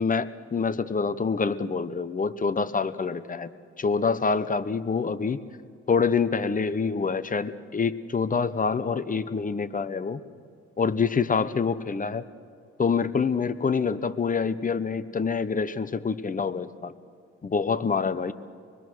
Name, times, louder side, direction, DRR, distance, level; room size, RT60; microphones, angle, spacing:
voice 1, 0.0-3.5 3.8-5.4 5.9-10.2 10.8-12.2 12.8-16.9 17.4-18.3, left 5 dB, 25° left, 12 dB, 0.9 m, -26 dB
25.5 x 21.0 x 6.2 m, 2.3 s
cardioid pair, 90°, 30 cm